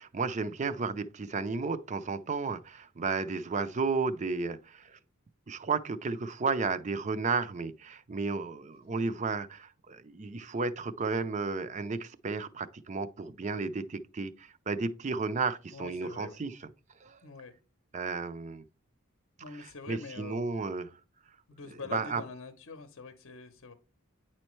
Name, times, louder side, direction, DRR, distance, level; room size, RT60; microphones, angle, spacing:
voice 1, 0.0-5.0 5.5-16.6 17.0-17.2 17.9-18.6 19.9-20.9 21.7-22.2, right 4 dB, 35° right, 0.4 m, -33 dB
voice 2, 15.7-16.4 17.2-17.5 19.4-20.4 21.5-23.7, left 4 dB, 60° left, 0.7 m, -44 dB
9.4 x 4.4 x 3.1 m
head